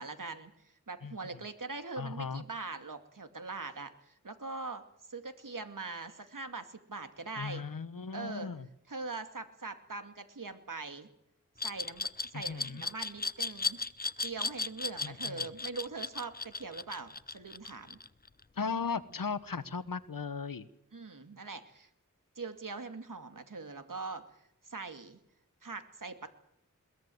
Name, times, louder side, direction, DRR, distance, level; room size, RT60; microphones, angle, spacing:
voice 1, 0.0-4.8 5.1-7.6 8.1-8.5 8.9-11.1 11.6-13.8 14.2-18.0 20.9-21.9 22.4-24.3 24.6-25.2 25.6-26.3, right 3 dB, 70° right, 8 dB, 2.4 m, -42 dB
voice 2, 1.0-1.4 2.0-2.4 7.4-8.7 12.3-12.9 15.0-15.5 18.6-20.7, left 5 dB, 90° left, 15 dB, 1.2 m, -37 dB
Glass, 11.6-18.4, left 3 dB, 30° left, 0.8 m, -35 dB
22.0 x 19.5 x 7.9 m, 0.78 s
wide cardioid pair, 55°, 33 cm